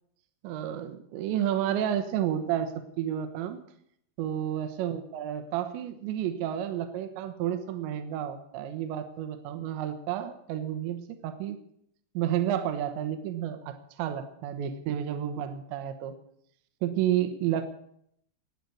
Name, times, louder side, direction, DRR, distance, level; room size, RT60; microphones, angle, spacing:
voice 1, 0.4-3.6 4.2-11.6 12.1-16.2 16.8-17.7, right 10 dB, 75° right, 8 dB, 3.4 m, -31 dB
16.0 x 9.5 x 8.4 m, 0.71 s
omnidirectional pair, 5.4 m